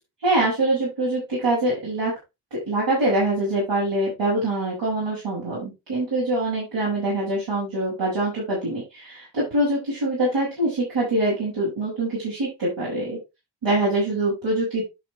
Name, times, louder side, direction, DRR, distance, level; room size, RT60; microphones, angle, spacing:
voice 1, 0.2-2.1 2.7-13.2 13.6-14.8, right 2 dB, 75° right, -6 dB, 6.8 m, -24 dB
11.0 x 6.0 x 3.3 m, 0.24 s
cardioid pair, 65°, 43 cm